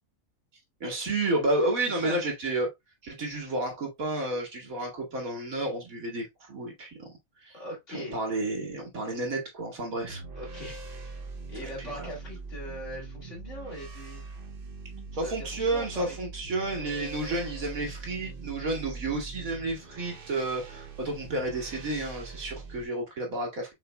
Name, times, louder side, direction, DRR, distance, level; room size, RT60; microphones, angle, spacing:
voice 1, 0.8-2.7 3.0-7.1 7.5-7.6 7.9-10.2 11.6-12.1 15.1-23.7, right 2 dB, 85° right, 2.2 m, -31 dB
voice 2, 7.5-8.2 9.0-9.2 10.3-10.8 11.5-14.2 15.2-16.2, equal, 60° left, 3.0 m, -40 dB
sound 1, 10.0-22.8, right 3 dB, 45° right, 0.9 m, -42 dB
5.5 x 4.1 x 2.2 m
omnidirectional pair, 1.4 m